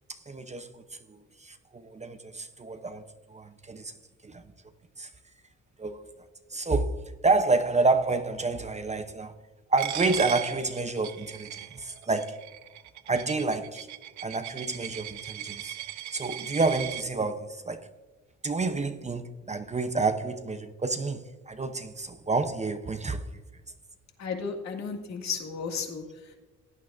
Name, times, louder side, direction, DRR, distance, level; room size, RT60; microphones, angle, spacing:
voice 1, 0.1-0.8 1.1-3.0 3.3-3.9 4.2-4.4 5.0-5.1 5.8-6.0 6.5-9.3 9.7-12.4 13.1-13.9 14.2-15.8 16.1-17.9 18.4-23.2, right 3 dB, 25° right, 0.7 m, -29 dB
Coin (dropping), 9.8-17.0, right 13 dB, 70° right, 0.6 m, -38 dB
voice 2, 24.2-26.3, left 5 dB, 65° left, 2.0 m, -34 dB
17.0 x 9.4 x 2.6 m
cardioid pair, 90°, 30 cm